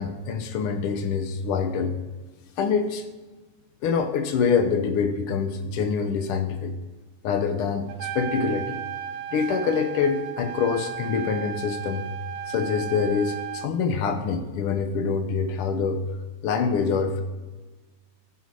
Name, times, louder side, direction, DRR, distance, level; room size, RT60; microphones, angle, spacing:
voice 1, 0.0-2.0 2.6-3.0 3.8-6.7 7.2-8.8 9.3-12.1 12.5-16.0 16.4-17.2, left 5 dB, 75° left, 8 dB, 1.3 m, -25 dB
Trumpet, 7.9-13.7, right 9 dB, 85° right, 1.4 m, -34 dB
14.5 x 6.4 x 4.7 m, 1.2 s
omnidirectional pair, 3.4 m